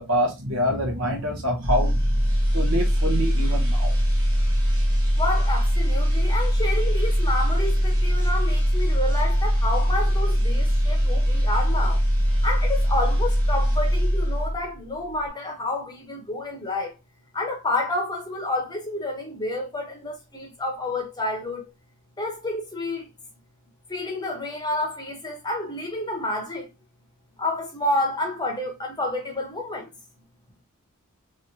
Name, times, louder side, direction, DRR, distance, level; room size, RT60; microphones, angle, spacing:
voice 1, 0.0-2.2 2.5-4.0, equal, 65° right, 1.1 m, -26 dB
sound 1, 1.6-14.8 15.1-15.3, equal, 20° right, 1.1 m, -21 dB
voice 2, 5.2-12.0 12.4-17.0 17.3-21.6 22.2-23.1 23.9-26.7 27.4-29.9, left 2 dB, 20° left, 0.9 m, -29 dB
3.1 x 3.0 x 2.7 m
head